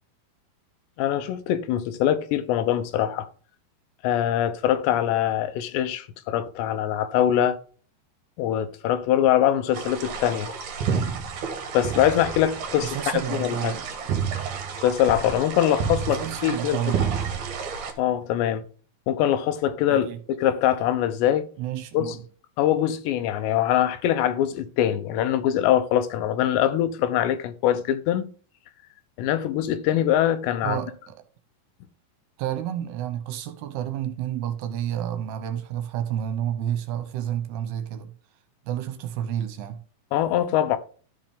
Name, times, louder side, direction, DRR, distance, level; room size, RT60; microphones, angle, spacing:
voice 1, 1.0-3.3 4.0-7.6 8.4-10.5 11.7-13.0 13.3-13.7 14.8-16.8 18.0-18.6 19.1-21.5 21.9-22.2 22.6-28.3 29.2-30.8 40.1-40.8, left 11 dB, 80° left, 2.8 m, -23 dB
sound 1, 9.7-17.9, right 6 dB, 60° right, 2.3 m, -30 dB
voice 2, 12.8-13.8 16.1-17.1 19.9-20.2 21.6-22.3 30.6-31.3 32.4-38.2 38.7-39.8, right 10 dB, 75° right, 2.7 m, -30 dB
13.0 x 5.1 x 3.6 m
omnidirectional pair, 5.2 m